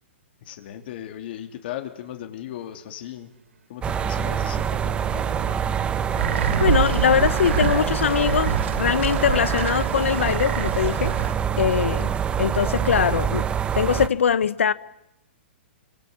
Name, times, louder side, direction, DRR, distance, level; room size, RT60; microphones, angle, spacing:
voice 1, 0.4-3.3 3.7-5.6, left 11 dB, 55° left, 3.1 m, -37 dB
sound 1, 0.8-0.9 1.9-2.2 2.5-2.6 3.0-3.3 4.3-10.0, right 6 dB, 85° right, 2.9 m, -42 dB
sound 2, 3.8-14.1, right 8 dB, 15° right, 1.1 m, -25 dB
sound 3, 6.2-11.3, right 8 dB, 70° right, 2.3 m, -27 dB
voice 2, 6.6-11.1 11.6-12.1 12.4-13.5 13.7-14.7, left 7 dB, 85° left, 1.0 m, -22 dB
26.5 x 24.5 x 8.7 m
hypercardioid pair, 145°, 7 cm